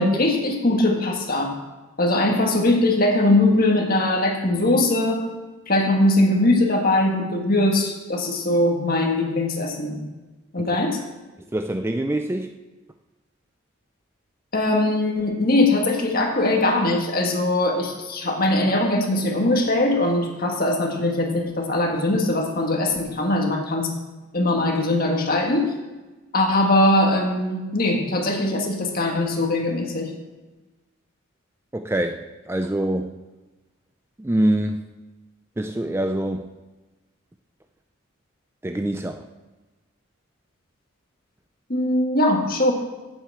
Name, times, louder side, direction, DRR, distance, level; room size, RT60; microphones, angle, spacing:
voice 1, 0.0-1.5 2.0-5.2 5.7-10.0 10.5-11.0 14.5-23.9 24.3-25.7 26.3-30.1 41.7-42.7, left 1 dB, 45° left, 2 dB, 1.8 m, -21 dB
voice 2, 11.5-12.5 31.7-33.1 34.2-34.9 35.6-36.5 38.6-39.2, right 1 dB, 10° right, 6 dB, 0.3 m, -25 dB
8.1 x 7.7 x 7.9 m, 1.2 s
head